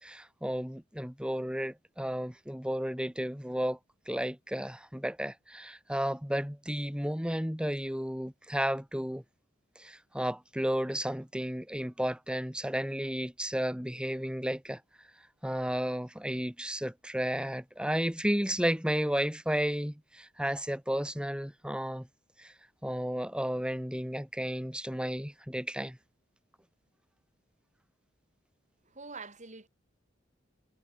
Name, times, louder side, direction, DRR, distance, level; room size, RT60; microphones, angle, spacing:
voice 1, 0.0-3.8 4.1-9.2 9.8-14.8 15.4-22.1 22.4-22.5 22.8-26.0, equal, 5° right, 4.0 m, -33 dB
voice 2, 28.9-29.7, right 4 dB, 40° right, 5.3 m, -45 dB
head